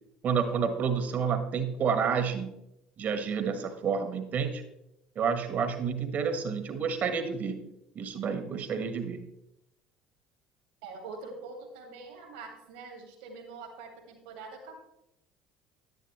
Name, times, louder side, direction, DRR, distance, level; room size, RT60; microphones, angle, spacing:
voice 1, 0.2-2.5 3.0-4.6 5.1-7.7 7.9-9.2, right 6 dB, 45° right, 8 dB, 1.5 m, -29 dB
voice 2, 10.8-14.8, right 4 dB, 70° right, 4 dB, 2.4 m, -44 dB
11.0 x 11.0 x 3.2 m, 0.84 s
figure-of-eight pair, 60°, 4 cm